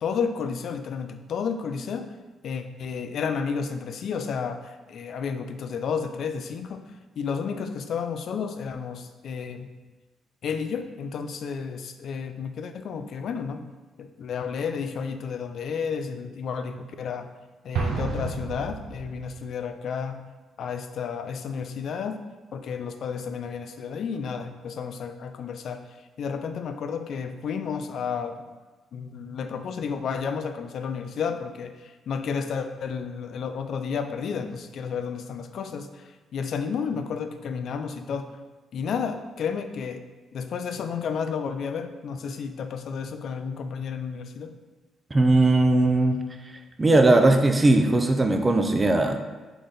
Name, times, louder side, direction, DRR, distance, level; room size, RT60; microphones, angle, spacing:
voice 1, 0.0-2.1 2.4-6.9 7.2-9.7 10.4-13.6 14.0-17.3 17.6-20.2 20.6-22.2 22.5-25.8 26.2-28.5 28.9-38.3 38.7-40.0 40.3-44.5, left 6 dB, 65° left, 8 dB, 0.4 m, -31 dB
Explosion, 17.7-19.5, right 5 dB, 85° right, 0.6 m, -31 dB
voice 2, 45.1-46.2 46.8-49.2, right 2 dB, 20° right, 5 dB, 0.4 m, -19 dB
3.8 x 3.3 x 3.9 m, 1.2 s
cardioid pair, 90°, 0 cm